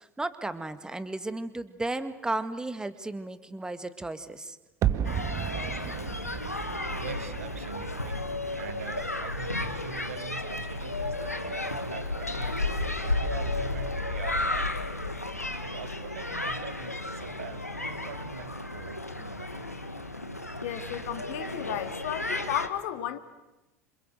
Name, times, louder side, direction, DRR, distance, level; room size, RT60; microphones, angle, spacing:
voice 1, 0.0-4.6, right 2 dB, 10° right, 1.9 m, -34 dB
sound 1, 4.8-9.8 10.0-10.1, right 10 dB, 40° right, 1.7 m, -34 dB
sound 2, 5.0-22.7, left 2 dB, 85° left, 1.7 m, -33 dB
voice 2, 7.0-12.6 13.0-15.0 15.6-19.7, right 9 dB, 65° right, 1.5 m, -44 dB
voice 3, 20.6-23.2, left 11 dB, 55° left, 2.3 m, -33 dB
28.5 x 26.5 x 7.9 m
figure-of-eight pair, 75°, 8 cm